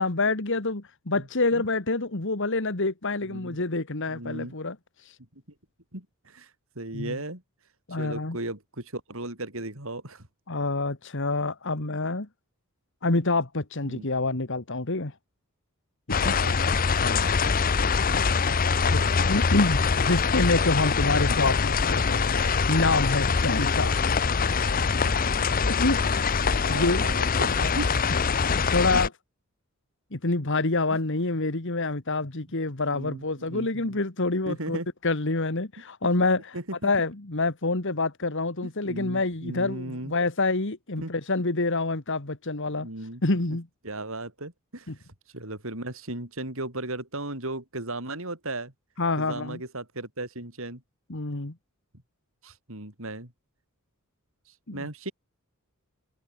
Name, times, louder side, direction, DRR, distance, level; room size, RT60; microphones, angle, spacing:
voice 1, 0.0-4.8 5.1-5.2 6.9-7.2 7.9-8.4 10.5-12.3 13.0-15.1 16.2-16.4 17.0-17.4 18.9-22.3 22.7-24.0 25.6-26.0 26.4-27.1 28.4-29.1 30.1-36.5 36.8-42.9 43.2-43.7 44.9-45.0 49.0-49.6 51.1-51.5 54.7-54.9, left 3 dB, 55° left, 1.9 m, -27 dB
voice 2, 3.2-3.6 4.1-4.5 5.9-6.5 6.8-7.4 8.0-10.3 13.9-14.1 16.2-16.6 26.6-27.9 28.9-29.0 32.9-34.0 34.5-34.9 36.5-36.9 38.9-40.1 41.0-41.1 42.8-43.2 43.5-43.6 43.8-44.9 45.3-48.7 49.2-50.8 52.4-53.3 54.7-55.1, right 2 dB, 65° right, 5.6 m, -36 dB
sound 1, 16.1-29.1, left 5 dB, 40° left, 0.7 m, -24 dB
head